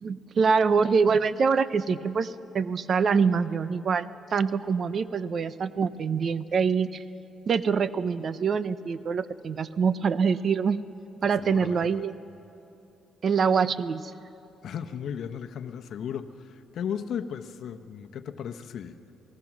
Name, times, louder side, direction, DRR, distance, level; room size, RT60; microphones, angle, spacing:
voice 1, 0.0-7.0 7.5-10.8 11.2-12.1 13.2-14.1, right 5 dB, 50° right, 15 dB, 0.7 m, -25 dB
voice 2, 11.4-12.0 14.6-19.0, left 8 dB, 70° left, 9 dB, 0.9 m, -35 dB
28.0 x 18.5 x 6.1 m, 2.9 s
cardioid pair, 90°, 0 cm